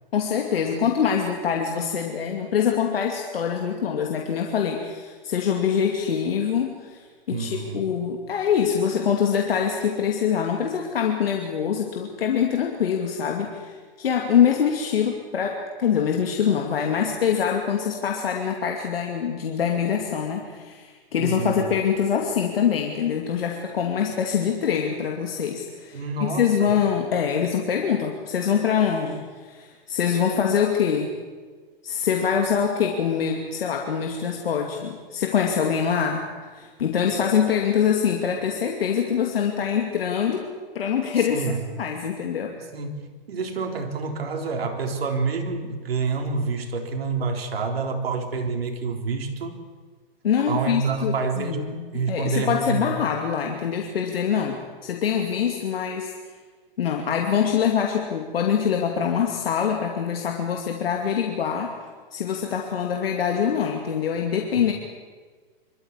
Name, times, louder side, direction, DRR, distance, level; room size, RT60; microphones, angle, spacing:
voice 1, 0.1-31.1 31.8-36.2 36.5-40.4 40.7-42.5 50.2-56.1 56.8-61.7 62.1-64.7, left 7 dB, 80° left, 2 dB, 2.6 m, -24 dB
voice 2, 7.3-7.8 21.2-21.6 25.9-26.8 41.1-41.7 42.6-49.6 50.5-53.0 64.5-64.7, right 4 dB, 80° right, 4 dB, 3.9 m, -28 dB
25.5 x 14.0 x 9.9 m, 1.5 s
hypercardioid pair, 140°, 29 cm